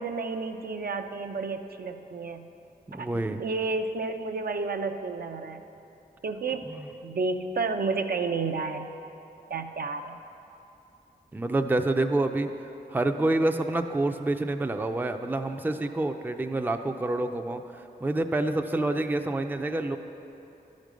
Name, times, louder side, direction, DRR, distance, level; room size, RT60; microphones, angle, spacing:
voice 1, 0.0-2.5 2.9-5.6 6.2-6.6 7.0-8.9 9.5-10.2, right 4 dB, 60° right, 5 dB, 0.6 m, -31 dB
voice 2, 2.9-3.4 6.6-6.8 11.3-12.5 12.9-20.0, right 2 dB, 10° right, 6 dB, 0.5 m, -27 dB
12.0 x 5.2 x 6.2 m, 2.9 s
cardioid pair, 60°, 17 cm